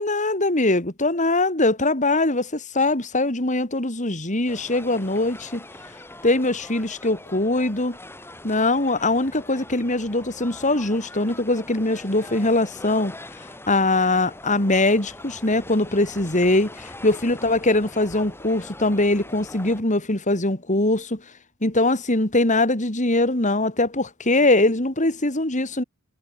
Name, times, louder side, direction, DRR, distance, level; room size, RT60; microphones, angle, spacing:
voice 1, 0.0-5.6 6.2-8.0 8.4-13.1 13.7-21.2 21.6-25.8, left 2 dB, 35° left, 3.0 m, -22 dB
sound 1, 4.5-19.8, left 1 dB, 10° left, 7.8 m, -42 dB
head